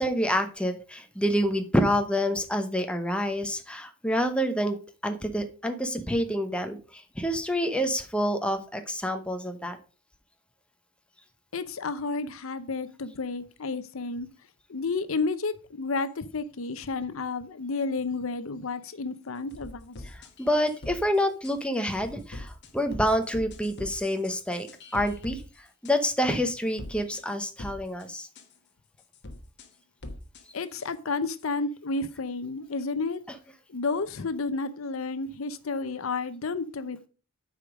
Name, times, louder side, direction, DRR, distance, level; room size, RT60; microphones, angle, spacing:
voice 1, 0.0-4.8 5.0-9.8 20.4-24.7 24.9-25.4 25.8-28.3, equal, 5° left, 0.9 m, -27 dB
voice 2, 11.5-14.3 14.7-20.0 30.5-33.2 33.7-37.1, left 3 dB, 70° left, 0.7 m, -31 dB
sound 1, 19.5-21.0 21.4-21.5 21.9-25.4 25.9-26.0 26.8-27.2 27.6-28.0 28.4-28.5 29.1-29.7 30.0-30.4 30.8-30.9 31.4-31.5, left 1 dB, 55° left, 1.2 m, -41 dB
8.3 x 5.0 x 5.1 m
head